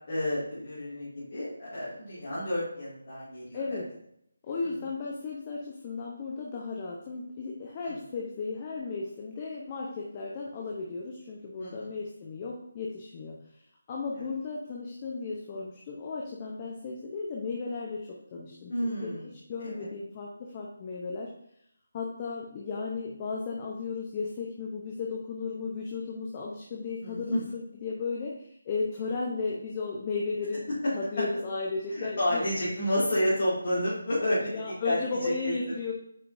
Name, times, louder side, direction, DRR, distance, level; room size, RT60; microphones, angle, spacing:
voice 1, 0.1-3.8 4.6-4.7 7.8-8.0 11.6-11.9 18.7-19.2 19.6-19.9 27.0-27.4 31.9-35.5, left 1 dB, 40° left, -11 dB, 2.4 m, -30 dB
voice 2, 3.5-3.9 4.4-13.4 13.9-18.7 19.0-21.3 21.9-30.6 30.9-32.5 34.4-35.9, left 4 dB, 25° left, -2 dB, 0.8 m, -35 dB
8.3 x 4.8 x 2.7 m, 0.72 s
figure-of-eight pair, 155°, 0 cm